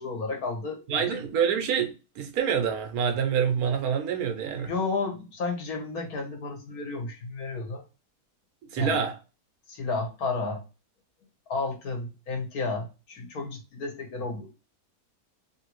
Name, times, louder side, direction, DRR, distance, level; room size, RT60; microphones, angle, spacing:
voice 1, 0.0-1.2 4.5-7.8 8.8-9.0 9.7-10.6 11.5-14.5, left 3 dB, 75° left, 1.6 m, -32 dB
voice 2, 0.9-4.7 8.7-9.2, right 7 dB, 75° right, 1.2 m, -26 dB
3.2 x 2.7 x 2.9 m
omnidirectional pair, 1.6 m